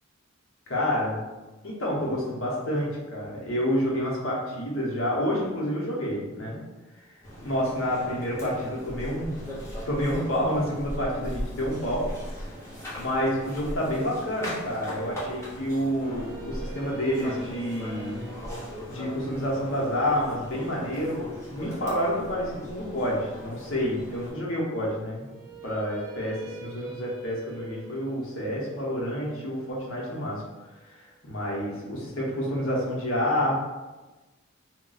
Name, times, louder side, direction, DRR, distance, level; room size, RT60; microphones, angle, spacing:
voice 1, 0.7-1.2 1.6-6.6 7.4-9.3 9.9-12.4 13.0-18.2 18.9-25.3 25.6-30.4 30.8-33.6, equal, 65° left, -4 dB, 0.9 m, -29 dB
sound 1, 7.2-24.3, equal, 15° left, 0.8 m, -39 dB
sound 2, 15.8-21.9 25.1-31.2, right 4 dB, 85° right, 0.4 m, -47 dB
2.3 x 2.2 x 3.9 m, 1.2 s
head